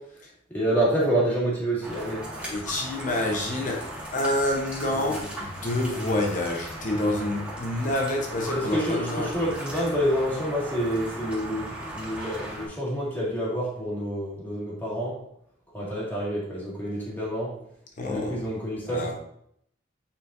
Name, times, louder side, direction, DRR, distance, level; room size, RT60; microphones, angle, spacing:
voice 1, 0.5-2.5 4.9-5.2 7.0-7.3 8.5-15.2 15.7-17.6 18.0-19.1, equal, 10° left, 2.1 m, -28 dB
sound 1, 1.8-12.7, right 1 dB, 5° right, 1.8 m, -37 dB
voice 2, 2.4-9.3 18.0-18.4 18.9-19.1, left 1 dB, 40° left, 0.9 m, -28 dB
9.3 x 4.3 x 2.6 m
head